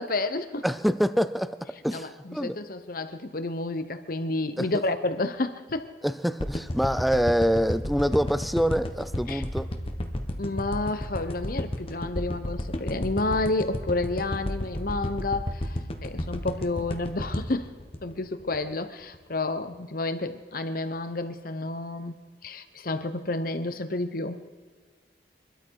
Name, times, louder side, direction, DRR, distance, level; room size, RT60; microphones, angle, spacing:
voice 1, 0.0-0.6 1.9-5.9 9.3-9.4 10.4-15.8 16.0-17.7 18.0-22.1 22.4-24.4, left 2 dB, 55° left, 10 dB, 1.0 m, -30 dB
voice 2, 0.6-2.6 4.6-4.7 6.0-9.7, equal, ahead, 13 dB, 0.4 m, -26 dB
sound 1, 6.4-18.7 19.1-19.2, left 1 dB, 30° left, 1.1 m, -32 dB
24.0 x 12.5 x 4.8 m, 1.5 s
head